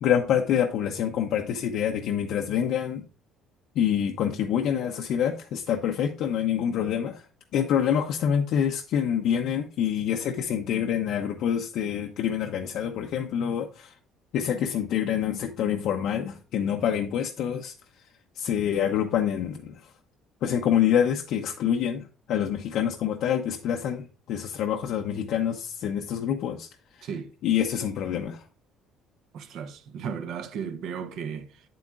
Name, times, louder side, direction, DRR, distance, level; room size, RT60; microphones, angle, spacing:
voice 1, 0.0-3.0 3.8-7.2 7.5-13.9 14.3-17.7 18.4-19.7 20.4-22.0 22.3-26.7 27.4-28.4, left 9 dB, 60° left, 0.6 m, -26 dB
voice 2, 27.0-27.3 29.3-31.6, right 7 dB, 55° right, 0.7 m, -35 dB
8.4 x 7.7 x 2.4 m
cardioid pair, 155°, 0 cm